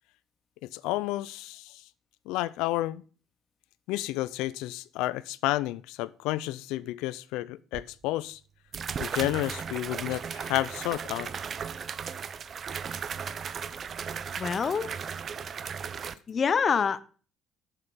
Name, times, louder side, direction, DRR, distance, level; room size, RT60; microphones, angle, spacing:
voice 1, 0.7-1.8 2.3-3.0 3.9-8.4 9.0-11.3, left 16 dB, 85° left, 0.3 m, -31 dB
sound 1, 7.7-7.8 8.7-16.1, right 7 dB, 45° right, 0.5 m, -36 dB
voice 2, 14.4-14.9 16.3-17.0, left 6 dB, 40° left, 0.6 m, -26 dB
7.2 x 6.6 x 5.0 m
cardioid pair, 95°, 0 cm